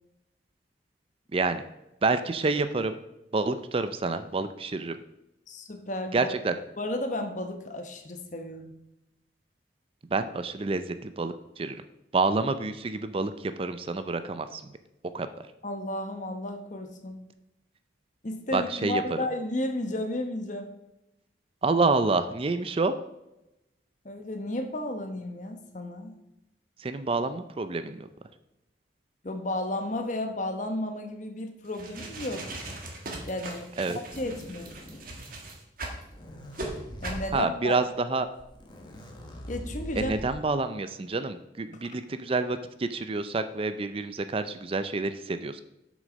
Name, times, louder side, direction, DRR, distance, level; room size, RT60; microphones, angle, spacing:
voice 1, 1.3-1.6 2.0-3.0 3.3-4.9 6.1-6.5 10.1-11.8 12.1-14.6 15.1-15.3 18.5-19.0 21.6-23.0 26.8-28.1 33.8-34.0 37.3-38.3 40.0-45.6, right 3 dB, 30° right, 11 dB, 0.4 m, -28 dB
voice 2, 5.5-6.3 6.8-8.7 15.6-17.2 18.2-20.7 24.0-26.1 29.2-32.5 33.3-33.8 34.1-34.8 37.0-37.9 39.5-40.1 41.7-41.8, left 1 dB, 45° left, 6 dB, 1.1 m, -33 dB
sound 1, 31.7-36.0 36.5-36.7 37.0-37.3, right 2 dB, 50° right, 1.7 m, -39 dB
sound 2, 34.1-35.3 35.9-37.3 38.1-38.2 38.4-40.5, equal, 25° left, 1.3 m, -42 dB
7.6 x 6.3 x 5.2 m, 0.91 s
head